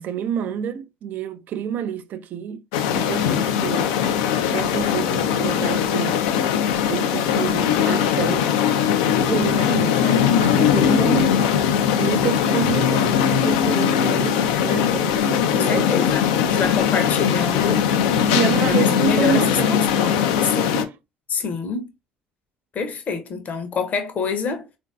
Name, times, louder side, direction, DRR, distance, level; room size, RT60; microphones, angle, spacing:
voice 1, 0.0-3.9 4.5-6.3 6.9-8.6 9.2-11.3 11.9-15.9 18.2-19.8, right 8 dB, 50° right, 0.4 m, -28 dB
sound 1, 2.7-20.8, left 8 dB, 70° left, 0.4 m, -20 dB
voice 2, 15.5-17.9 18.7-20.9 21.3-21.9 22.7-24.7, left 5 dB, 40° left, 0.7 m, -26 dB
3.7 x 2.5 x 2.3 m
hypercardioid pair, 60°, 4 cm